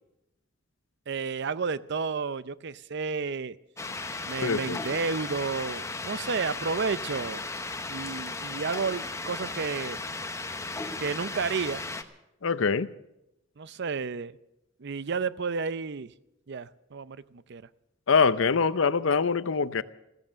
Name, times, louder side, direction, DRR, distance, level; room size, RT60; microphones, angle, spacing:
voice 1, 1.1-3.6 4.3-7.4 7.9-10.0 11.0-11.8 13.6-14.3 14.8-16.1 16.5-17.6, right 5 dB, 55° right, 0.6 m, -31 dB
sound 1, 3.8-12.0, left 3 dB, 15° left, 0.9 m, -36 dB
voice 2, 4.4-4.8 12.4-12.9 18.1-19.8, left 5 dB, 70° left, 0.6 m, -24 dB
15.0 x 14.5 x 6.4 m
head